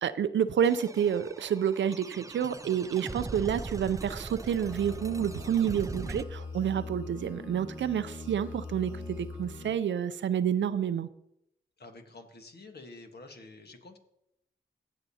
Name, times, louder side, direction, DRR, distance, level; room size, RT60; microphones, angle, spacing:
voice 1, 0.0-11.1, right 8 dB, 75° right, 14 dB, 0.5 m, -29 dB
sound 1, 0.6-6.2, right 3 dB, 15° right, 0.4 m, -41 dB
sound 2, 4.6-9.7, left 3 dB, 20° left, 2.6 m, -42 dB
voice 2, 11.8-14.0, left 2 dB, 60° left, 4 dB, 1.4 m, -49 dB
16.5 x 6.6 x 2.8 m, 0.80 s
cardioid pair, 45°, 19 cm